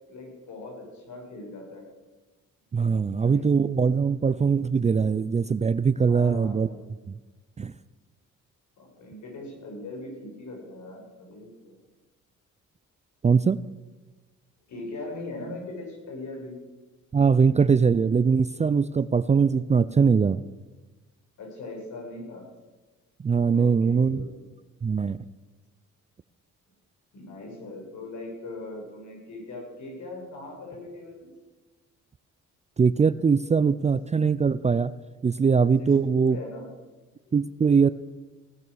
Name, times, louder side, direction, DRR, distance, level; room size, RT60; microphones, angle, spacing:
voice 1, 0.1-1.8 3.0-3.6 4.0-4.1 6.1-6.9 8.8-11.8 14.7-16.5 21.4-22.4 23.5-24.3 27.1-31.3 35.8-35.9 36.3-36.7 37.3-37.4, left 2 dB, 70° left, 0 dB, 6.5 m, -40 dB
voice 2, 2.7-6.7 7.1-7.2 7.6-7.7 13.2-13.6 17.1-20.4 23.2-24.3 24.8-25.2 32.8-34.9 35.2-36.4 37.3-37.9, right 5 dB, 25° right, 16 dB, 0.4 m, -21 dB
17.5 x 10.5 x 6.4 m, 1.2 s
cardioid pair, 90°, 30 cm